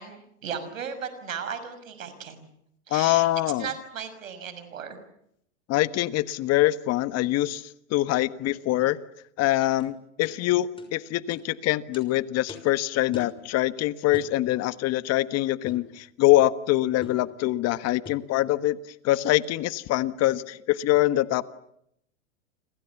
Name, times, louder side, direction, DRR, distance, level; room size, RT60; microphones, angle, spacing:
voice 1, 0.0-2.5 2.9-3.3 3.6-5.0, right 7 dB, 85° right, 11 dB, 6.4 m, -36 dB
voice 2, 2.9-3.7 5.7-9.0 9.4-18.8 19.0-21.4, left 16 dB, 40° left, 14 dB, 1.5 m, -24 dB
sound 1, 9.8-9.9 10.2-10.4 10.8-10.9 11.3-11.5 11.9-12.1 12.5-12.7 13.1-13.4 14.1-14.4 15.7-15.9 17.0-17.3 18.0-18.3, left 3 dB, 15° left, 6.2 m, -43 dB
29.5 x 26.5 x 7.3 m, 0.75 s
hypercardioid pair, 110°, 39 cm